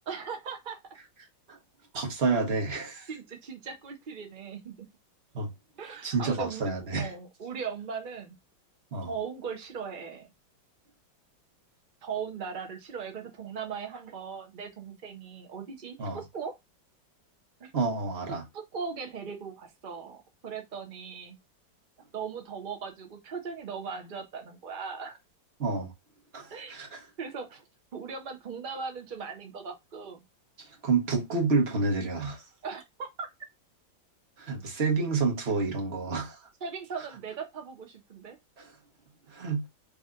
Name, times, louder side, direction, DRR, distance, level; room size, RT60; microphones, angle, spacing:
voice 1, 0.1-0.8 3.1-4.7 5.8-8.4 9.1-10.3 12.0-16.5 17.6-17.7 18.3-21.4 22.1-25.2 26.5-26.8 27.2-27.6 27.9-30.2 32.6-33.3 36.6-38.4, right 6 dB, 55° right, 0.5 m, -39 dB
voice 2, 1.9-3.1 5.3-5.5 6.0-7.1 8.9-9.1 16.0-16.2 17.7-18.4 25.6-25.9 26.3-27.0 30.6-32.4 34.4-36.4 38.6-38.7 39.3-39.6, right 4 dB, 40° right, 1.0 m, -29 dB
4.7 x 2.8 x 3.6 m
omnidirectional pair, 2.1 m